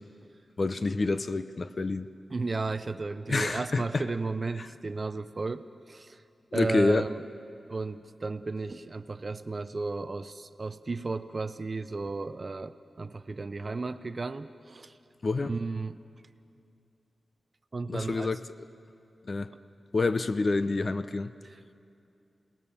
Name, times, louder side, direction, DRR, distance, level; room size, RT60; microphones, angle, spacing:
voice 1, 0.6-2.1 3.3-4.0 4.6-4.7 6.5-7.1 15.2-15.5 17.9-18.4 19.3-19.5 19.9-21.3, left 3 dB, 40° left, 12 dB, 0.6 m, -28 dB
voice 2, 2.3-6.2 6.5-7.2 7.7-15.0 15.4-16.0 17.7-18.3 21.4-21.7, right 3 dB, 35° right, 12 dB, 0.5 m, -34 dB
27.5 x 19.0 x 7.1 m, 2.6 s
wide cardioid pair, 160°, 0 cm